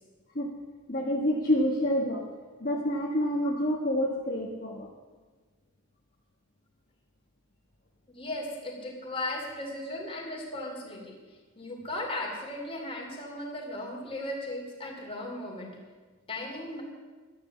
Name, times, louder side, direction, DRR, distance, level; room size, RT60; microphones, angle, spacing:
voice 1, 0.9-2.3 2.6-4.9, equal, 40° left, -2 dB, 1.4 m, -28 dB
voice 2, 8.1-11.2 11.5-15.7 16.3-16.8, left 1 dB, 25° left, 0 dB, 2.7 m, -36 dB
12.5 x 10.5 x 7.1 m, 1.4 s
head